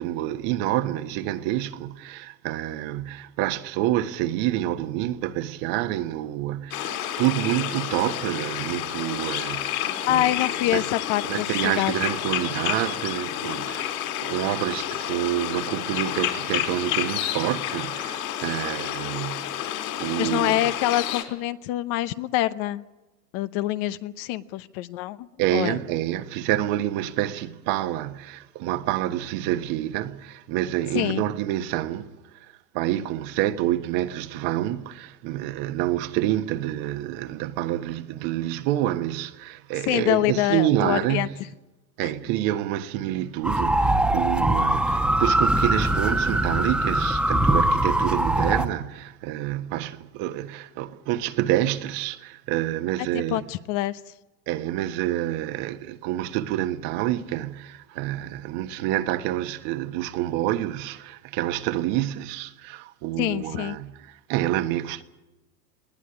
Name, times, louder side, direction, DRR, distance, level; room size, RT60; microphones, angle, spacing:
voice 1, 0.0-10.3 10.7-10.8 11.3-19.7 20.0-20.6 25.4-32.1 32.4-41.4 42.0-53.4 54.5-65.0, right 14 dB, 45° right, 1.5 m, -28 dB
sound 1, 6.7-21.2, left 11 dB, 65° left, 4.0 m, -30 dB
voice 2, 10.1-11.9 20.2-22.8 23.3-25.8 30.9-31.2 39.9-41.3 53.1-54.0 63.2-63.8, left 15 dB, 40° left, 0.9 m, -25 dB
sound 2, 43.4-48.7, right 1 dB, ahead, 1.2 m, -22 dB
20.5 x 18.0 x 9.9 m
hypercardioid pair, 115°, 48 cm